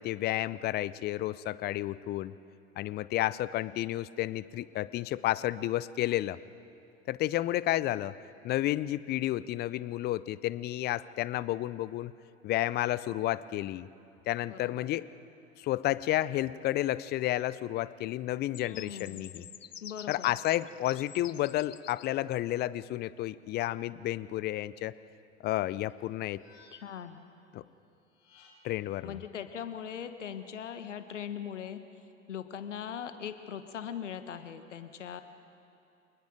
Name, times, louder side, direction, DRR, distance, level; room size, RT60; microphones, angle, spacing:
voice 1, 0.0-2.3 2.8-6.4 7.1-8.1 8.4-12.1 12.4-13.9 14.3-15.1 15.6-19.4 20.1-24.9 25.4-26.4 27.5-27.6 28.6-29.2, left 15 dB, 25° left, 18 dB, 0.5 m, -31 dB
voice 2, 14.5-14.9 18.7-19.3 19.8-20.3 26.7-27.2 29.0-31.8 32.3-35.2, left 8 dB, 75° left, 10 dB, 1.5 m, -40 dB
sound 1, 18.5-22.1, left 9 dB, 90° left, 0.5 m, -48 dB
sound 2, 25.9-27.1 28.0-28.9, left 3 dB, 50° left, 5.0 m, -61 dB
27.0 x 20.0 x 5.1 m, 2.7 s
figure-of-eight pair, 85°, 37 cm